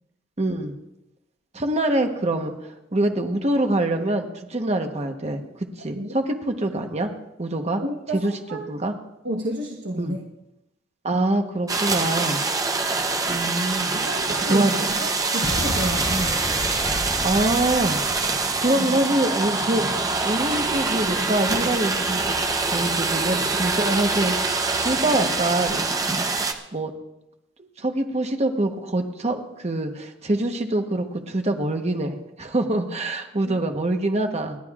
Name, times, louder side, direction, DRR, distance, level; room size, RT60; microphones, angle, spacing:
voice 1, 0.4-0.7 1.5-7.1 7.4-7.8 8.1-8.3 8.7-8.9 10.0-10.2 11.0-12.4 13.3-13.9 14.5-15.0 17.2-18.0 18.6-19.9 20.2-22.2 22.7-25.9 26.7-26.9 27.6-34.6, right 1 dB, 35° right, 4 dB, 1.1 m, -25 dB
voice 2, 7.8-8.7 9.2-10.2 13.9-16.4 26.1-26.2 33.4-33.6, right 1 dB, 75° right, 0 dB, 1.2 m, -31 dB
sound 1, 11.7-26.5, right 3 dB, 20° right, 0.8 m, -24 dB
Explosion, 15.4-19.5, left 1 dB, 15° left, 0.6 m, -32 dB
29.0 x 10.5 x 2.4 m, 0.91 s
head